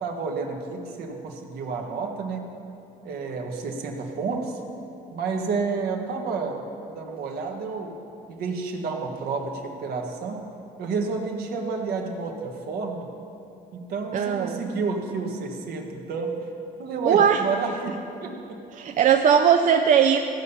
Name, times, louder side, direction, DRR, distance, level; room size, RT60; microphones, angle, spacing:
voice 1, 0.0-2.5 3.0-4.6 5.1-6.6 6.9-8.0 8.3-10.5 10.8-13.1 13.7-16.4 16.8-18.6, right 4 dB, 70° right, 2 dB, 1.4 m, -30 dB
voice 2, 14.1-14.6 17.1-17.4 18.7-20.2, right 8 dB, 50° right, 5 dB, 0.5 m, -19 dB
15.0 x 5.5 x 7.0 m, 2.8 s
cardioid pair, 110°, 17 cm